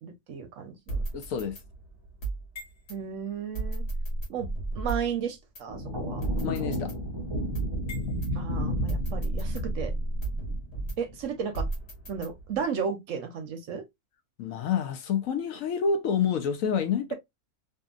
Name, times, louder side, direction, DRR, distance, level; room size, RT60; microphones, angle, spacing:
voice 1, 0.0-1.0 2.9-3.8 4.3-4.5 4.7-6.2 8.3-9.9 11.0-11.7 12.1-13.8, right 6 dB, 65° right, 0.9 m, -34 dB
sound 1, 0.9-3.0 3.5-5.2 5.5-5.6 6.2-8.3 8.9-11.2 11.5-12.6, right 2 dB, 50° left, 1.3 m, -33 dB
voice 2, 1.1-1.6 6.4-7.0 14.4-17.1, left 7 dB, 70° left, 0.9 m, -28 dB
sound 2, 5.7-11.3, equal, 35° right, 0.4 m, -33 dB
2.7 x 2.6 x 2.3 m
omnidirectional pair, 1.6 m